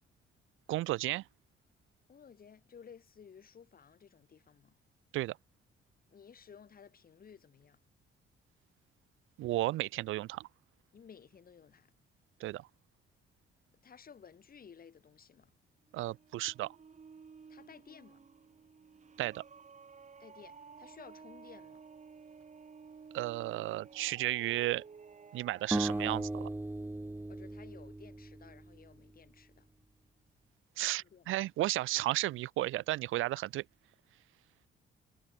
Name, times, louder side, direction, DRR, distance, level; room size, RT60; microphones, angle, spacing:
voice 1, 0.7-1.2 5.1-5.4 9.4-10.5 12.4-12.7 15.9-16.8 19.2-19.4 23.1-24.8 25.3-26.5 30.8-33.6, right 16 dB, 90° right, 1.5 m, -33 dB
voice 2, 2.1-4.7 6.1-7.8 10.9-11.9 13.8-15.5 17.5-18.3 20.2-21.8 27.3-29.7 30.8-31.3, left 7 dB, 45° left, 4.6 m, -56 dB
sound 1, 15.8-26.3, right 5 dB, 35° right, 3.4 m, -54 dB
sound 2, 25.7-28.9, right 2 dB, 10° right, 1.1 m, -37 dB
cardioid pair, 90°, 20 cm